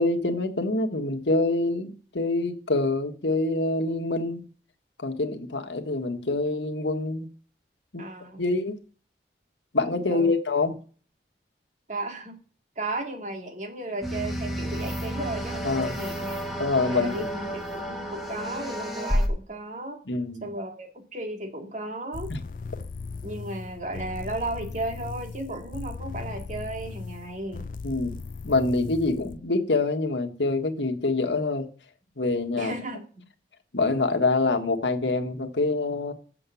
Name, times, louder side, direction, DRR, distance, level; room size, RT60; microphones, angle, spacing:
voice 1, 0.0-4.4 5.0-7.3 7.9-8.0 8.4-8.8 9.7-10.8 15.6-16.0 16.6-17.3 20.1-20.5 22.3-22.4 27.8-28.1 28.4-31.7 32.2-32.7 33.7-36.1, left 3 dB, 85° left, 1.6 m, -25 dB
voice 2, 8.0-8.4 10.1-10.4 11.9-12.4 12.8-16.5 16.9-20.0 20.4-22.3 23.2-27.7 32.6-33.3, right 2 dB, 40° right, 2.2 m, -35 dB
sound 1, 14.0-19.3, equal, ahead, 1.7 m, -31 dB
sound 2, 22.1-29.4, left 4 dB, 50° left, 0.4 m, -38 dB
7.7 x 7.3 x 7.0 m
head